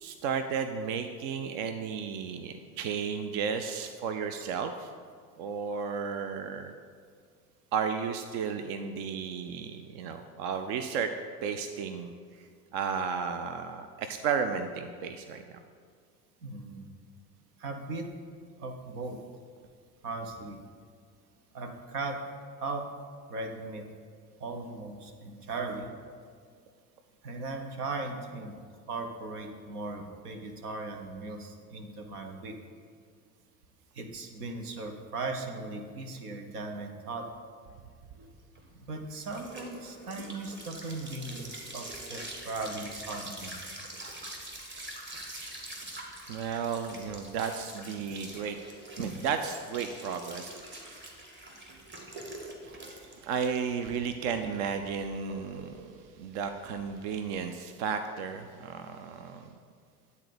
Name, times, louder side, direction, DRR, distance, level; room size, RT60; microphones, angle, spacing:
voice 1, 0.0-4.9 5.4-6.7 7.7-11.1 11.4-12.1 12.7-15.6 41.5-42.0 45.9-48.6 49.0-50.5 52.9-55.9 56.2-59.5, right 6 dB, 55° right, 8 dB, 0.6 m, -33 dB
voice 2, 16.4-16.9 17.6-18.1 18.6-19.2 20.0-20.6 21.5-22.2 22.6-22.9 23.3-23.8 24.4-25.9 27.2-28.6 28.9-32.6 33.9-37.3 38.1-38.3 38.9-43.6 49.0-49.1, right 3 dB, 75° right, 4 dB, 1.1 m, -38 dB
sound 1, 38.3-57.4, right 1 dB, 25° right, 1.7 m, -45 dB
9.6 x 4.1 x 6.8 m, 2.1 s
figure-of-eight pair, 65°, 46 cm